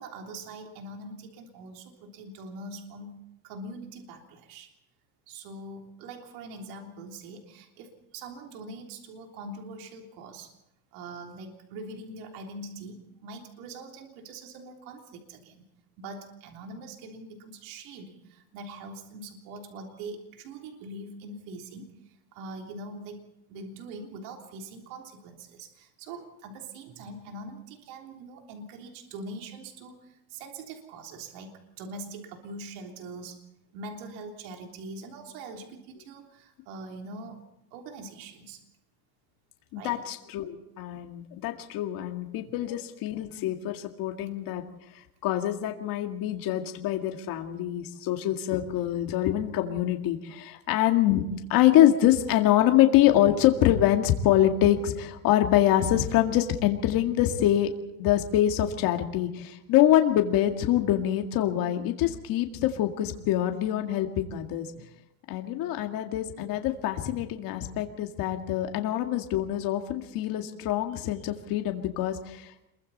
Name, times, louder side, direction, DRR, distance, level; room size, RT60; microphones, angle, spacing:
voice 1, 0.0-3.1 3.4-4.7 5.3-10.5 10.9-15.7 16.0-23.2 23.5-33.4 33.7-37.4 37.7-38.6 39.7-40.0 42.4-42.5 64.7-64.9 68.5-68.6, right 2 dB, 70° right, 2 dB, 3.5 m, -43 dB
voice 2, 39.7-44.6 45.2-51.2 51.5-57.7 58.0-64.7 65.3-72.7, left 12 dB, 50° left, 4 dB, 2.1 m, -25 dB
27.0 x 23.0 x 4.2 m, 0.86 s
cardioid pair, 145°, 45 cm